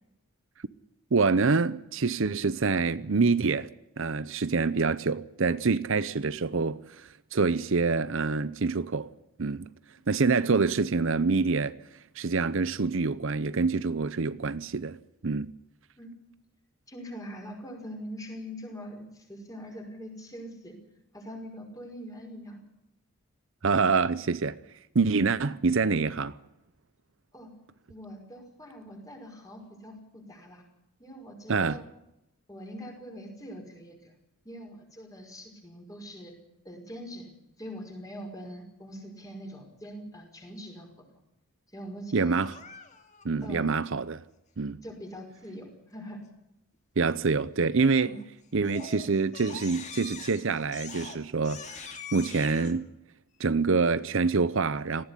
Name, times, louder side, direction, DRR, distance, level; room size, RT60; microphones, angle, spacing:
voice 1, 1.1-3.7 4.0-9.1 9.4-9.7 10.1-11.7 12.2-15.0 15.2-15.5 23.6-24.5 24.9-26.3 31.5-31.8 42.1-42.6 43.2-44.2 44.6-44.8 47.0-48.1 48.5-52.9 53.4-55.0, right 4 dB, 60° right, 0.7 m, -26 dB
voice 2, 16.9-20.8 21.1-22.6 27.3-27.5 27.9-30.6 31.0-31.9 32.5-34.1 34.5-36.3 36.6-37.3 37.6-41.1 41.7-42.3 43.4-43.7 44.8-46.2 48.0-48.2, equal, 15° left, 5.6 m, -43 dB
Crying sobbing, 42.3-43.2 47.9-48.2 48.6-52.7, left 5 dB, 30° left, 2.4 m, -44 dB
19.0 x 15.5 x 9.9 m
head